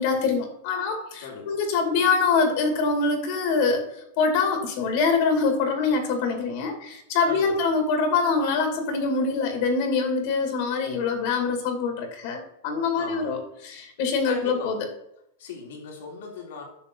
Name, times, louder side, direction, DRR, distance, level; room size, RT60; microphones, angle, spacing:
voice 1, 0.0-3.8 4.2-13.4 13.6-14.9, left 4 dB, 55° left, 4 dB, 2.3 m, -24 dB
voice 2, 1.2-1.6 7.2-7.6 12.9-13.4 14.2-14.8 15.4-16.6, left 4 dB, 80° left, 0 dB, 3.1 m, -38 dB
10.0 x 6.3 x 3.8 m, 0.78 s
supercardioid pair, 150°, 0 cm